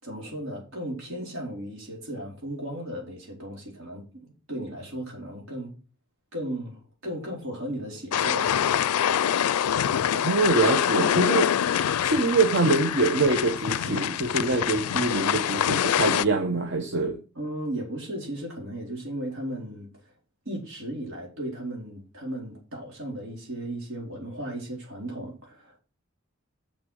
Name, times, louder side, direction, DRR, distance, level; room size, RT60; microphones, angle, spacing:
voice 1, 0.0-5.7 6.3-8.5 13.8-14.1 17.3-19.9 20.4-25.8, right 1 dB, 70° right, 4.4 m, -35 dB
sound 1, 8.1-16.3, left 9 dB, 90° left, 0.4 m, -25 dB
voice 2, 10.1-11.5 12.0-17.2, right 3 dB, 55° right, 0.9 m, -24 dB
6.7 x 6.6 x 6.4 m
head